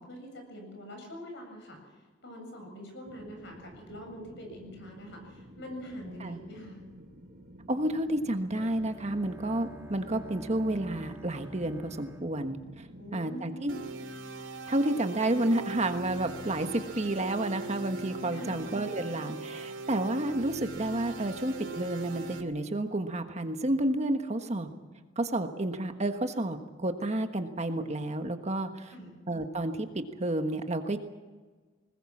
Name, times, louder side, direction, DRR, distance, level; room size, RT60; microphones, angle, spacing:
voice 1, 0.0-1.8 2.2-6.8 13.0-13.8 18.3-18.7 28.9-29.2, equal, 65° left, 3 dB, 7.5 m, -44 dB
sound 1, 3.1-13.2, equal, 50° right, 3.8 m, -52 dB
voice 2, 7.7-12.9 13.1-13.7 14.7-24.7 25.2-28.9 29.3-31.0, right 1 dB, 35° right, 6 dB, 1.4 m, -30 dB
Bowed string instrument, 8.5-13.5, right 1 dB, 15° right, 1.5 m, -47 dB
sound 2, 13.7-22.4, right 2 dB, 80° right, 2.2 m, -40 dB
21.0 x 20.5 x 7.3 m, 1.3 s
head